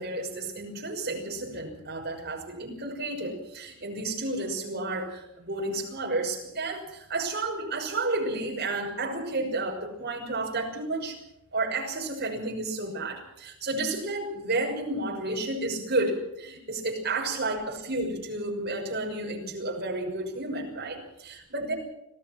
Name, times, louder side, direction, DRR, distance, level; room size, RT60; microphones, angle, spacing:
voice 1, 0.0-11.2 11.5-21.7, right 2 dB, 45° right, 0 dB, 6.3 m, -31 dB
26.0 x 17.5 x 6.2 m, 0.85 s
head